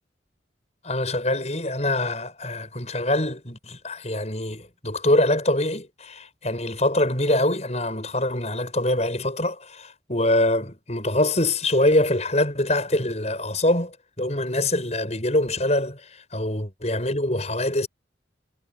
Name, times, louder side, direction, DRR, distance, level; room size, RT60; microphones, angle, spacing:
voice 1, 0.8-17.9, left 1 dB, 35° left, 7.7 m, -24 dB
head